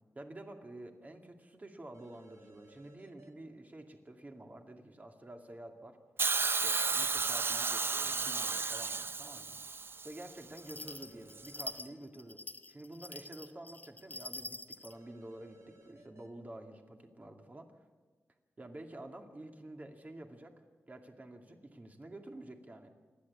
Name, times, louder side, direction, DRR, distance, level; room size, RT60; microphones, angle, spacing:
voice 1, 0.1-6.0 6.5-9.6 10.0-12.4 12.7-17.7 18.6-20.6 20.9-22.9, right 1 dB, 30° right, 4 dB, 2.4 m, -49 dB
sound 1, 1.9-3.3 6.3-7.6 10.6-11.9 14.9-16.3, right 1 dB, 70° right, 3.9 m, -60 dB
Hiss, 6.2-10.3 11.3-11.4, right 4 dB, 50° right, 0.7 m, -33 dB
sound 2, 10.6-15.0, left 1 dB, 30° left, 1.2 m, -45 dB
27.5 x 11.5 x 8.6 m, 1.4 s
wide cardioid pair, 95°, 5 cm